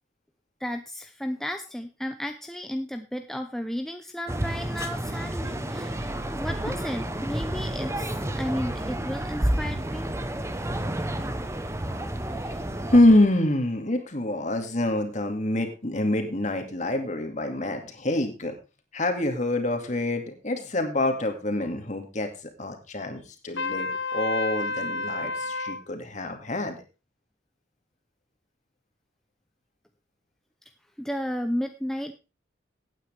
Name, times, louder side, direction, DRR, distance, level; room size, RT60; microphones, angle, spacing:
voice 1, 0.6-10.1 31.0-32.1, equal, ahead, 6 dB, 0.6 m, -33 dB
sound 1, 4.3-13.0, right 1 dB, 15° right, 0.9 m, -30 dB
voice 2, 12.9-18.5 18.9-22.3 22.6-26.8, left 1 dB, 40° left, 5 dB, 2.2 m, -25 dB
Trumpet, 23.6-25.8, left 3 dB, 65° left, 1.1 m, -30 dB
16.5 x 9.1 x 3.4 m, 0.29 s
head